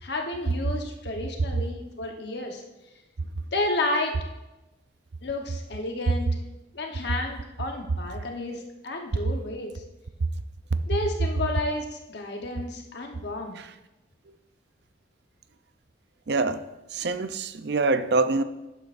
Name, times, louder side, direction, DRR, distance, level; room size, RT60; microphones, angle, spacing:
voice 1, 0.0-2.6 3.5-4.1 5.2-6.3 6.7-9.7 10.9-13.6, left 2 dB, 60° left, 1.0 m, -31 dB
voice 2, 16.3-16.6 16.9-18.4, right 3 dB, 60° right, 0.5 m, -25 dB
12.0 x 9.0 x 2.5 m
head